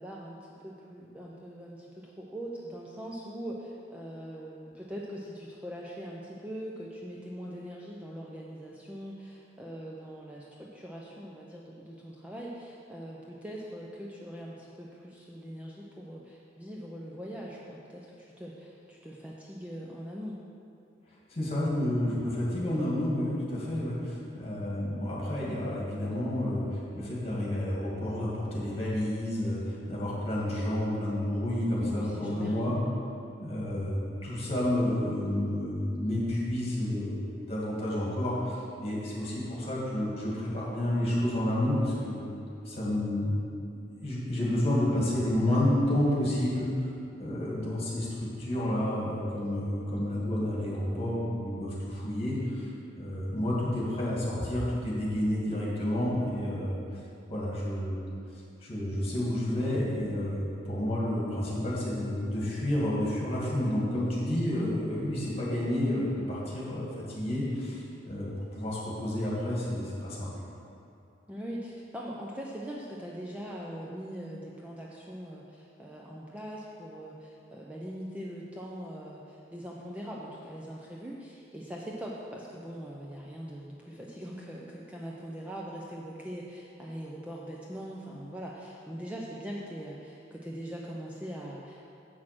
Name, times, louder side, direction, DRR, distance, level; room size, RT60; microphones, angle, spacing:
voice 1, 0.0-20.4 31.9-32.9 71.3-92.0, equal, 5° right, -4 dB, 0.6 m, -41 dB
voice 2, 21.3-32.8 33.4-34.0 34.2-42.3 42.7-43.3 44.0-46.7 47.2-52.7 52.9-56.8 57.3-58.0 58.6-70.3, left 1 dB, 30° left, -5 dB, 2.2 m, -30 dB
7.6 x 6.4 x 6.0 m, 2.6 s
head